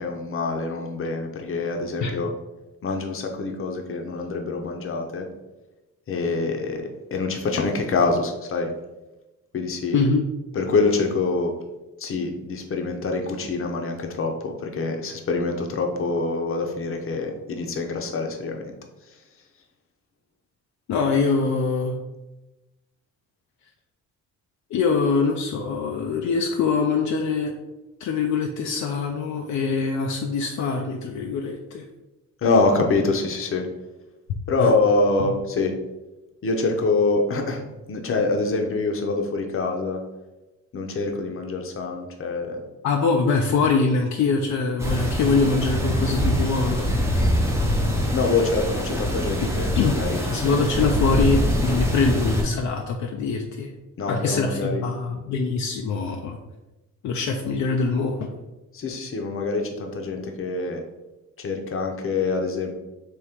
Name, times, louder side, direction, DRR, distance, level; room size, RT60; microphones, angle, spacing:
voice 1, 0.0-2.3 2.8-5.3 6.1-8.7 9.5-10.0 10.5-11.6 12.0-18.7 19.0-19.2 32.4-33.7 34.5-35.8 36.4-40.0 40.7-42.6 48.1-50.9 54.0-54.8 58.7-60.8 61.4-62.7, left 3 dB, 45° left, 3 dB, 0.8 m, -25 dB
voice 2, 9.9-10.3 20.9-22.0 24.7-27.5 28.0-31.8 34.6-34.7 42.8-46.9 49.8-50.0 50.3-53.7 54.1-56.4 57.0-58.3, left 4 dB, 70° left, 2 dB, 0.6 m, -23 dB
sound 1, 44.8-52.4, equal, 10° right, 0.8 m, -24 dB
3.6 x 3.0 x 4.4 m, 1.0 s
cardioid pair, 90°, 30 cm